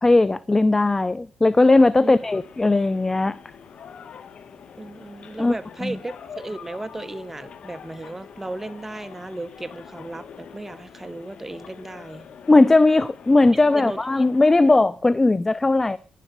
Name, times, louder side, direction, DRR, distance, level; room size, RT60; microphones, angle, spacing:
voice 1, 0.0-3.4 5.4-5.5 5.8-5.9 12.5-16.0, left 2 dB, 20° left, 0.5 m, -18 dB
sound 1, 1.9-14.7, left 7 dB, 60° left, 1.7 m, -44 dB
voice 2, 4.8-12.3 13.5-14.3 14.5-14.6, right 2 dB, 15° right, 1.0 m, -35 dB
11.0 x 11.0 x 6.7 m
cardioid pair, 95°, 2 cm